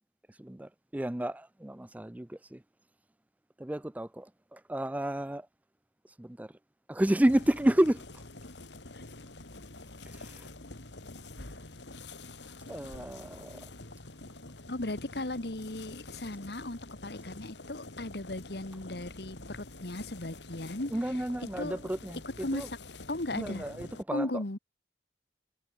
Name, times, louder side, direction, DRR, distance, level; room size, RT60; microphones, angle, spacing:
voice 1, 0.3-2.6 3.6-5.5 6.2-6.5 6.9-8.0 10.1-10.5 12.7-13.7 20.9-22.7 23.3-24.6, right 1 dB, 10° right, 0.4 m, -31 dB
sound 1, 7.3-24.0, left 2 dB, 80° left, 3.1 m, -47 dB
voice 2, 14.7-20.9 21.6-21.8 22.4-22.7 23.1-23.7 24.1-24.6, left 2 dB, 65° left, 1.7 m, -36 dB
head